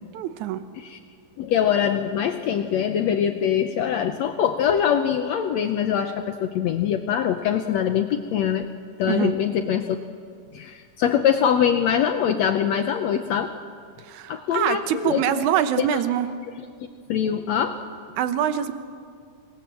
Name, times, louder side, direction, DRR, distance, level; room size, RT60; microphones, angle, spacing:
voice 1, 0.1-0.6 9.1-9.3 14.0-16.3 18.2-18.7, right 10 dB, 70° right, 10 dB, 2.2 m, -24 dB
voice 2, 1.4-8.7 9.0-10.0 10.5-13.5 14.3-15.3 15.8-16.0 17.1-17.8, left 9 dB, 75° left, 6 dB, 1.6 m, -23 dB
26.0 x 19.5 x 7.6 m, 2.2 s
omnidirectional pair, 4.0 m